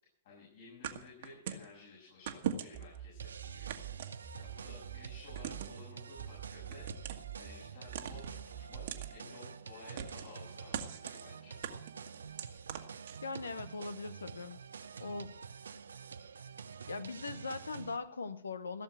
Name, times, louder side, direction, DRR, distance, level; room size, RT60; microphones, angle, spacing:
voice 1, 0.2-4.0 4.3-6.9 7.3-8.8 9.1-11.6, left 3 dB, 60° left, -4 dB, 7.0 m, -54 dB
sound 1, 0.8-1.7 2.3-3.0 3.7-4.6 5.3-5.8 6.7-7.3 7.9-8.4 8.9-9.1 10.0-10.4 10.7-11.2 11.6-13.5, right 9 dB, 60° right, 1.6 m, -40 dB
sound 2, 2.7-5.8 6.2-9.2, right 12 dB, 35° right, 1.5 m, -47 dB
sound 3, 3.2-18.0, right 6 dB, 80° right, 0.8 m, -48 dB
voice 2, 13.2-14.6 15.0-15.4 16.9-18.8, left 4 dB, 85° left, 14 dB, 0.9 m, -40 dB
16.5 x 6.9 x 8.9 m, 0.72 s
hypercardioid pair, 115°, 0 cm